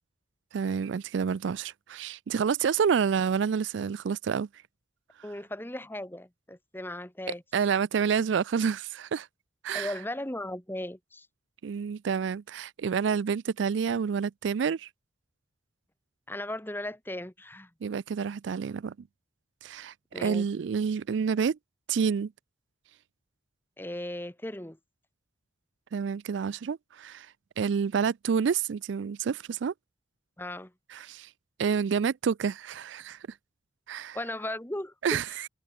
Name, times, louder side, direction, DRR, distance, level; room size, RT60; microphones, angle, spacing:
voice 1, 0.5-4.5 7.5-9.3 9.6-9.9 11.6-14.9 17.8-18.9 19.6-21.6 21.9-22.3 25.9-27.3 27.6-29.7 30.9-31.3 31.6-33.2 33.9-34.2 35.0-35.3, right 6 dB, 70° right, 0.4 m, -28 dB
voice 2, 5.2-7.4 9.7-11.3 16.3-17.7 20.1-20.5 23.8-24.8 30.4-30.7 34.1-35.4, left 1 dB, 10° left, 1.6 m, -37 dB
head